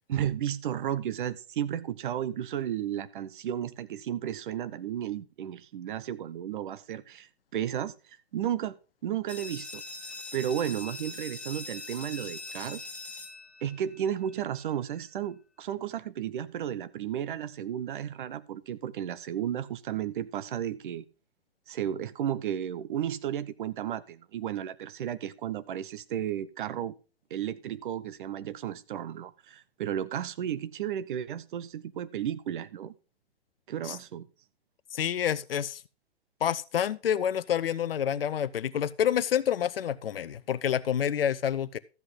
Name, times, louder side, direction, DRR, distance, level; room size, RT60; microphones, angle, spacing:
voice 1, 0.1-7.9 8.3-8.8 9.0-9.8 10.3-12.9 13.6-21.0 21.7-26.9 27.3-32.9 33.7-34.3, right 10 dB, 50° right, 0.8 m, -33 dB
sound 1, 9.3-14.7, left 3 dB, 5° left, 1.3 m, -42 dB
voice 2, 34.9-35.8 36.4-41.8, left 9 dB, 65° left, 0.7 m, -28 dB
13.5 x 7.7 x 3.8 m
figure-of-eight pair, 110°, 32 cm